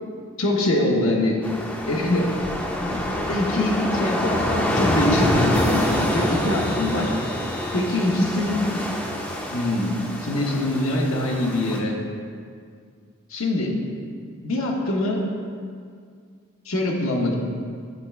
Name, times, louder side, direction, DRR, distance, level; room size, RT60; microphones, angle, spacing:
voice 1, 0.4-1.4 1.9-2.4 2.8-7.1 7.7-8.7 9.5-12.0 13.3-13.7 14.4-15.2 16.6-17.4, left 1 dB, 75° left, -1 dB, 1.0 m, -23 dB
sound 1, 1.4-11.8, left 1 dB, 5° left, 0.5 m, -26 dB
sound 2, 5.5-9.1, left 2 dB, 45° left, 0.8 m, -40 dB
9.7 x 3.3 x 4.4 m, 2.1 s
head